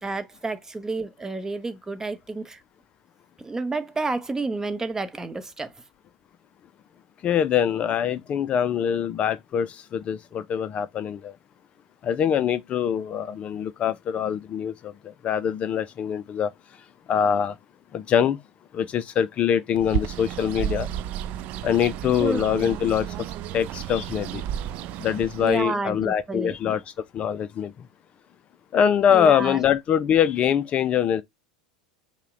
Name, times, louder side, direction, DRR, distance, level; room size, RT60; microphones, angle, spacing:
voice 1, 0.0-2.6 3.4-5.7 22.2-22.7 25.4-26.8 29.1-29.6, right 3 dB, 15° right, 0.8 m, -30 dB
voice 2, 7.2-11.4 12.0-17.6 17.9-18.4 18.7-20.9 21.6-24.4 25.0-27.9 28.7-31.2, left 8 dB, 35° left, 0.4 m, -24 dB
Bird, 19.8-25.7, right 10 dB, 50° right, 0.4 m, -32 dB
5.6 x 2.2 x 3.7 m
hypercardioid pair, 85°, 4 cm